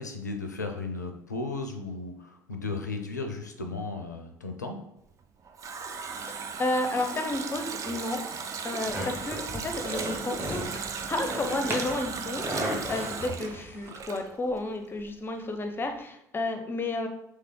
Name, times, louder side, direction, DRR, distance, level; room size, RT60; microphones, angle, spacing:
voice 1, 0.0-4.8, left 3 dB, 85° left, 5 dB, 0.4 m, -35 dB
Water tap faucet, 5.1-14.7 15.0-15.1, right 6 dB, 35° right, 0.4 m, -37 dB
voice 2, 6.2-10.8 11.1-17.1, left 2 dB, 25° left, 5 dB, 0.5 m, -32 dB
sound 1, 8.9-13.9, equal, 20° right, 1.0 m, -36 dB
3.3 x 3.1 x 3.7 m, 0.78 s
figure-of-eight pair, 55°, 9 cm